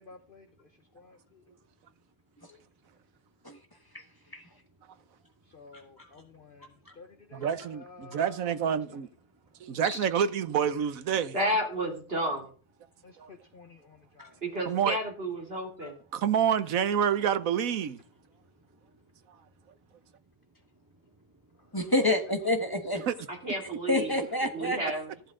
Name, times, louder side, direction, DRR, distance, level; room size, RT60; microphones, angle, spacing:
voice 1, 0.0-1.5 5.5-6.7 7.0-8.6 8.9-9.0 13.0-14.4 14.9-15.1 21.6-21.8 22.3-22.4, left 4 dB, 45° left, 1.0 m, -52 dB
voice 2, 0.7-2.0 2.9-3.0 3.4-3.6 3.9-7.0 7.4-7.7 8.0-8.2 9.3-9.8 12.9-13.6 14.0-14.4 15.8-15.9 18.2-21.8 23.3-23.4, left 1 dB, 15° right, 2.1 m, -60 dB
voice 3, 7.3-9.1 9.6-11.4 13.2-13.3 14.7-15.0 16.1-18.0 23.1-23.2, right 8 dB, 75° right, 1.3 m, -28 dB
voice 4, 11.3-12.5 14.4-15.9 23.4-24.2 24.5-25.1, equal, 45° right, 3.6 m, -31 dB
voice 5, 21.7-23.0 23.9-24.8, left 1 dB, 15° left, 1.4 m, -27 dB
14.5 x 11.5 x 3.8 m
omnidirectional pair, 1.5 m